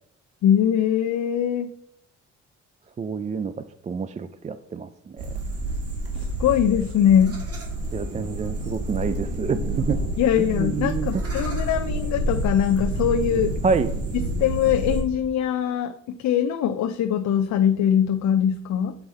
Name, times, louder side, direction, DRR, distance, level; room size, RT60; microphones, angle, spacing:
voice 1, 0.4-1.7 6.2-7.4 10.2-13.5 14.4-19.0, left 9 dB, 65° left, 8 dB, 0.6 m, -22 dB
voice 2, 3.0-3.5 3.8-5.2 7.9-10.0 10.5-11.1 13.6-13.9, right 5 dB, 25° right, 12 dB, 0.3 m, -27 dB
sound 1, 5.2-15.0, right 1 dB, 50° right, 1.9 m, -28 dB
7.9 x 4.7 x 4.1 m, 0.69 s
cardioid pair, 90°, 30 cm